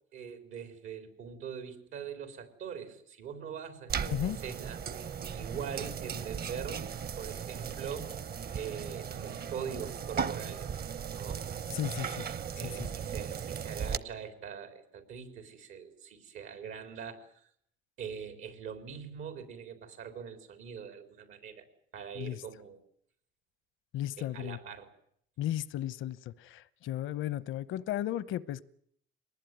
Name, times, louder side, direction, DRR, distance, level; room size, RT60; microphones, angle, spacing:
voice 1, 0.1-4.8 5.1-6.9 7.2-8.1 8.5-10.7 11.1-11.5 12.6-17.3 18.0-21.7 21.9-22.8 24.2-24.9, right 7 dB, 90° right, 4.3 m, -42 dB
sound 1, 3.9-14.0, right 7 dB, 50° right, 1.0 m, -37 dB
voice 2, 4.0-4.4 11.7-12.3 12.6-12.7 22.2-22.4 23.9-24.6 25.4-28.6, left 13 dB, 85° left, 0.9 m, -35 dB
22.5 x 20.0 x 9.4 m
cardioid pair, 90°, 20 cm